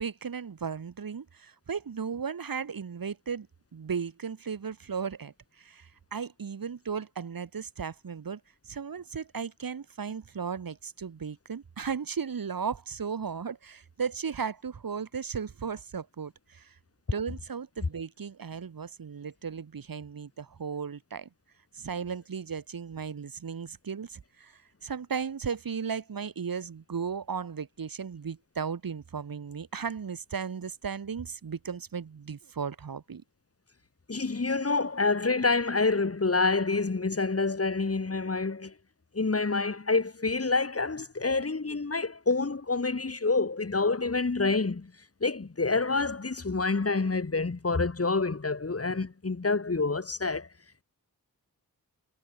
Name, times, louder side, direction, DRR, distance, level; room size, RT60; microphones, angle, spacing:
voice 1, 0.0-3.5 3.7-16.7 17.1-21.3 21.7-33.2, right 6 dB, 65° right, 1.6 m, -36 dB
voice 2, 34.1-38.7 39.1-44.9 45.2-50.5, left 3 dB, 40° left, 2.6 m, -27 dB
wide cardioid pair, 70°, 37 cm